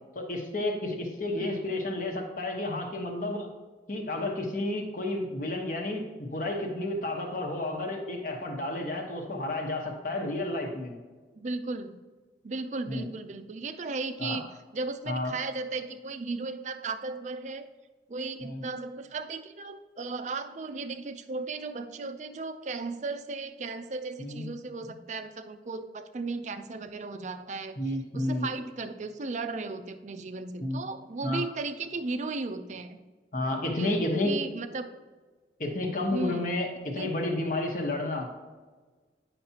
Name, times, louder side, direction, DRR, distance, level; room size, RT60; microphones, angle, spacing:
voice 1, 0.1-3.5 3.9-11.0 12.9-13.0 14.2-14.4 15.1-15.3 18.4-18.6 24.2-24.5 24.8-24.9 27.8-28.5 30.6-30.8 31.2-31.4 33.3-34.3 35.6-38.3, left 1 dB, 45° left, 2 dB, 1.1 m, -31 dB
voice 2, 11.4-12.0 12.4-14.5 14.7-17.7 18.1-27.8 28.1-33.0 33.8-34.9 36.1-36.6 37.0-37.1, right 3 dB, 40° right, 9 dB, 0.4 m, -35 dB
9.4 x 5.8 x 2.8 m, 1.3 s
head